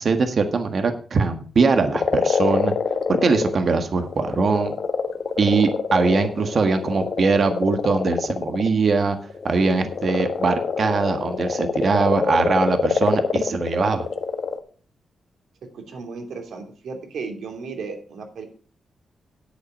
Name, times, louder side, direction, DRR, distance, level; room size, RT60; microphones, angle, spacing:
voice 1, 0.0-2.7 3.1-4.7 5.4-9.2 9.4-14.1, right 4 dB, 50° right, 7 dB, 1.6 m, -21 dB
sound 1, 2.0-3.6 3.9-14.6, left 5 dB, 55° left, 1.3 m, -25 dB
voice 2, 15.7-18.4, right 4 dB, 80° right, 4 dB, 2.8 m, -34 dB
10.5 x 8.1 x 5.6 m, 0.40 s
wide cardioid pair, 115°, 0 cm